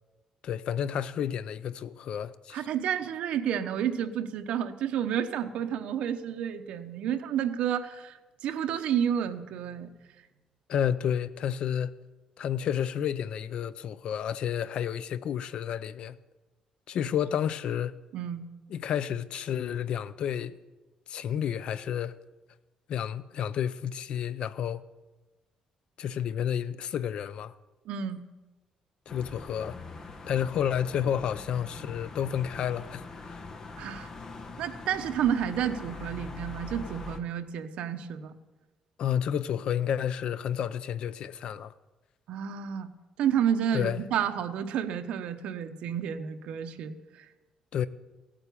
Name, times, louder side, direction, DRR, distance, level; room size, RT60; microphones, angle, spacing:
voice 1, 0.4-2.6 10.7-11.9 12.4-16.2 16.9-17.9 18.7-20.6 21.1-22.1 22.9-24.8 26.0-27.5 29.1-29.8 30.3-33.5 39.0-41.7 43.7-44.0 47.7-47.9, left 9 dB, 55° left, 0.6 m, -30 dB
voice 2, 2.5-9.9 18.1-18.5 27.8-28.2 33.8-34.1 34.6-38.4 42.3-42.9 43.2-47.3, right 9 dB, 70° right, 1.1 m, -30 dB
sound 1, 29.1-37.2, left 3 dB, 30° left, 1.1 m, -43 dB
16.5 x 8.9 x 8.5 m
cardioid pair, 165°, 2 cm